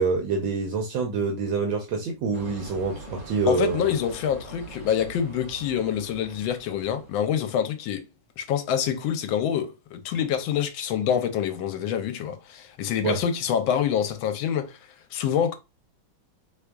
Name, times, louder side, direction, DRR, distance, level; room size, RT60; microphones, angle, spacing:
voice 1, 0.0-3.9 13.0-13.2, right 4 dB, 75° right, 1.4 m, -26 dB
sound 1, 2.3-7.5, right 1 dB, 40° left, 1.7 m, -43 dB
voice 2, 3.5-8.0 8.4-14.8 15.1-15.5, left 9 dB, 80° left, 1.4 m, -26 dB
3.4 x 3.4 x 2.3 m
omnidirectional pair, 2.2 m